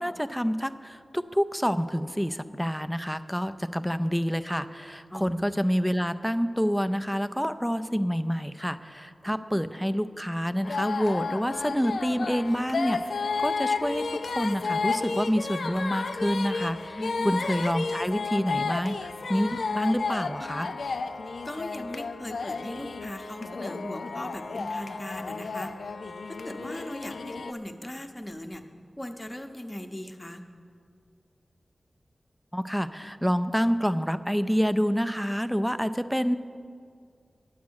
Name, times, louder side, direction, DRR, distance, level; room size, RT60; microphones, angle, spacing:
voice 1, 0.0-17.0 17.2-20.7 32.5-36.4, equal, ahead, 11 dB, 0.4 m, -28 dB
sound 1, 10.6-27.5, left 4 dB, 85° left, 0.4 m, -32 dB
voice 2, 17.0-17.4 21.4-25.7 26.4-28.6 29.0-30.4, left 1 dB, 20° left, 5 dB, 0.8 m, -38 dB
9.3 x 8.5 x 6.3 m, 2.2 s
wide cardioid pair, 65°, 0 cm